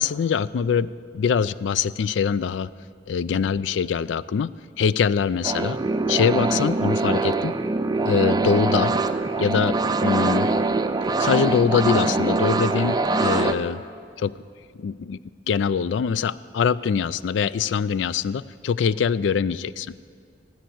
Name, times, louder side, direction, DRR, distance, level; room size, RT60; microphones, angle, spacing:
voice 1, 0.0-2.7 3.1-5.8 6.1-7.6 8.1-8.9 9.4-9.8 10.0-10.5 11.2-13.8 14.2-14.3 14.8-15.2 15.5-19.9, left 6 dB, 85° left, 18 dB, 0.3 m, -23 dB
sound 1, 5.4-13.5, right 3 dB, 25° right, 0.5 m, -23 dB
13.0 x 9.3 x 7.8 m, 2.2 s
head